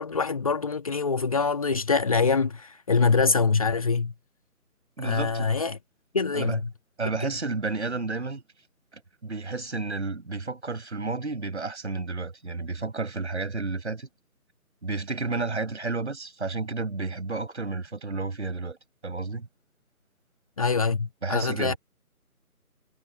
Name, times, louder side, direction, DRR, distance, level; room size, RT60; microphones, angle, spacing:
voice 1, 0.0-4.1 5.0-5.8 6.1-6.7 20.6-21.7, left 4 dB, 25° left, 1.9 m, -24 dB
voice 2, 5.0-5.5 6.3-6.6 7.0-8.4 8.9-14.1 14.8-18.8 19.0-19.5 21.2-21.8, right 3 dB, 45° right, 6.9 m, -31 dB
figure-of-eight pair, 155°, 46 cm